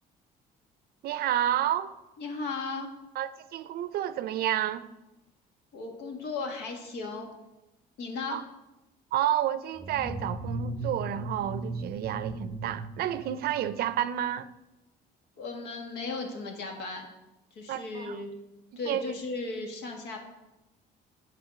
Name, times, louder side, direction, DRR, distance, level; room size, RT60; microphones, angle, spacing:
voice 1, 1.0-1.9 3.2-4.9 8.3-8.4 9.1-14.5 17.7-18.2 18.7-19.0, right 11 dB, 65° right, 0.5 m, -30 dB
voice 2, 2.2-2.9 5.7-7.3 8.0-8.4 15.4-17.1 17.5-18.3 18.8-20.2, left 3 dB, 80° left, 1.8 m, -36 dB
sound 1, 9.8-13.9, right 1 dB, ahead, 0.9 m, -37 dB
8.2 x 5.0 x 6.0 m
cardioid pair, 110°, 17 cm